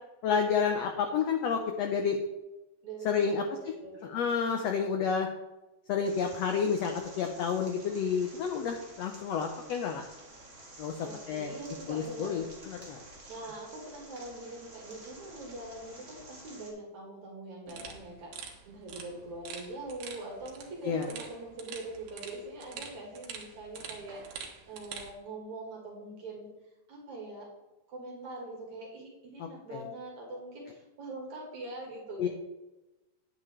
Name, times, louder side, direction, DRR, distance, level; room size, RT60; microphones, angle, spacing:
voice 1, 0.2-2.2 3.0-3.7 4.0-5.3 5.9-10.0 10.8-11.5 11.9-13.0 20.8-21.1 29.4-29.8 32.2-32.3, left 6 dB, 90° left, 4 dB, 1.4 m, -30 dB
voice 2, 2.8-4.2 11.0-12.4 13.3-26.5 26.9-27.5 27.9-32.3, right 2 dB, 60° right, -2 dB, 3.1 m, -43 dB
sound 1, 6.0-16.7, right 2 dB, 25° right, 1.6 m, -51 dB
sound 2, 17.7-25.1, right 6 dB, 80° right, 2.9 m, -46 dB
10.0 x 9.1 x 3.2 m, 1.0 s
omnidirectional pair, 3.9 m